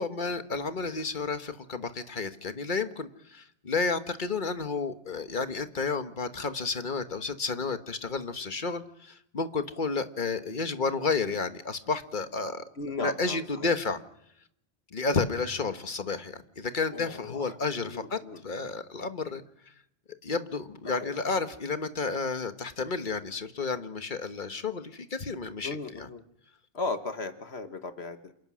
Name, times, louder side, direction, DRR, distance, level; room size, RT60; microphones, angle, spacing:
voice 1, 0.0-12.6 13.0-14.0 14.9-19.4 20.2-26.1, left 4 dB, 50° left, 9 dB, 1.4 m, -31 dB
voice 2, 12.8-13.7 16.9-17.6 17.8-18.4 20.9-21.4 25.6-26.2 26.7-28.3, left 3 dB, 70° left, 8 dB, 1.7 m, -37 dB
27.5 x 18.5 x 6.3 m, 0.76 s
omnidirectional pair, 1.1 m